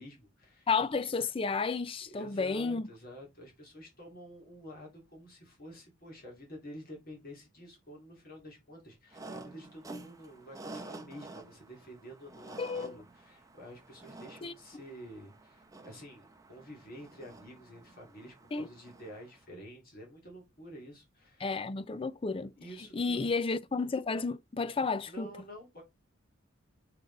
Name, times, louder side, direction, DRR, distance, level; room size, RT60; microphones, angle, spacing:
voice 1, 0.0-0.7 2.0-21.6 22.6-23.4 25.1-25.8, equal, 45° left, 2.7 m, -49 dB
voice 2, 0.7-2.9 12.6-12.9 14.4-14.5 18.5-18.7 21.4-22.5 22.9-25.3, left 4 dB, 25° left, 0.4 m, -32 dB
sound 1, 9.1-19.4, right 2 dB, 15° right, 0.8 m, -50 dB
6.4 x 3.9 x 3.9 m
head